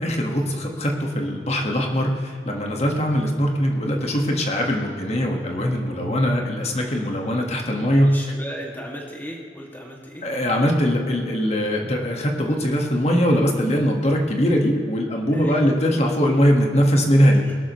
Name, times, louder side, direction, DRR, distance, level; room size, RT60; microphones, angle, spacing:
voice 1, 0.0-8.2 10.2-17.4, equal, 40° left, 1 dB, 1.7 m, -21 dB
voice 2, 7.9-10.3 15.3-15.7 17.4-17.5, equal, 10° left, -2 dB, 2.2 m, -36 dB
21.5 x 12.5 x 3.2 m, 2.2 s
head